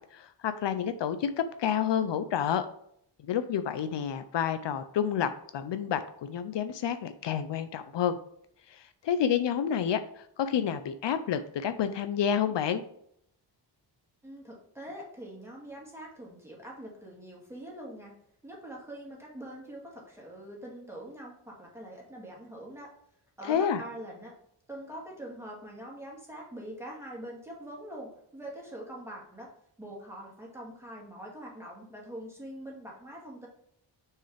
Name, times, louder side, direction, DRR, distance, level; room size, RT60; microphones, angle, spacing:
voice 1, 0.1-2.7 3.2-8.2 8.7-12.8 23.4-23.8, left 8 dB, 75° left, 10 dB, 0.6 m, -29 dB
voice 2, 14.2-18.1 18.4-22.9 23.4-24.3 24.7-29.5 29.8-33.5, right 1 dB, 5° right, -3 dB, 2.2 m, -44 dB
6.2 x 4.7 x 3.3 m, 0.69 s
wide cardioid pair, 100°, 44 cm